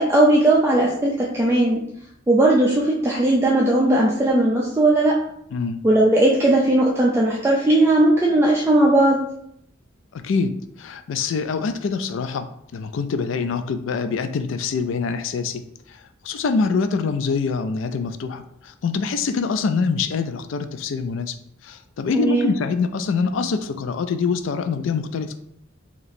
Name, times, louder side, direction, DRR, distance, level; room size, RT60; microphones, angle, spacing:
voice 1, 0.0-1.8 2.3-5.2 5.8-9.2 22.1-22.5, right 1 dB, 15° right, -4 dB, 0.4 m, -17 dB
voice 2, 5.5-5.8 10.1-12.5 12.7-15.6 15.9-21.4 21.6-25.3, left 5 dB, 70° left, 9 dB, 0.3 m, -25 dB
2.9 x 2.7 x 4.1 m, 0.73 s
head